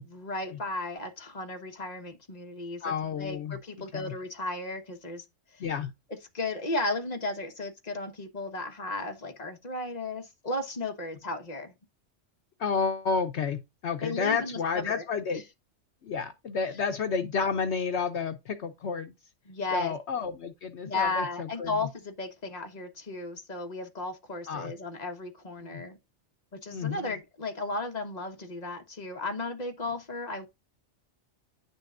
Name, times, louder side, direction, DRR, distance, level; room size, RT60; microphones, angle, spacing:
voice 1, 0.0-5.2 5.5-5.6 6.3-11.7 14.0-15.0 15.3-15.4 19.4-19.9 20.8-26.0 26.6-30.5, left 2 dB, 35° left, 1.4 m, -34 dB
voice 2, 2.8-3.6 3.9-4.1 5.6-5.9 12.6-15.4 16.0-19.1 19.7-21.8 24.5-24.7 25.6-25.8 26.7-27.2, left 5 dB, 65° left, 1.1 m, -31 dB
9.9 x 6.8 x 2.5 m
omnidirectional pair, 1.3 m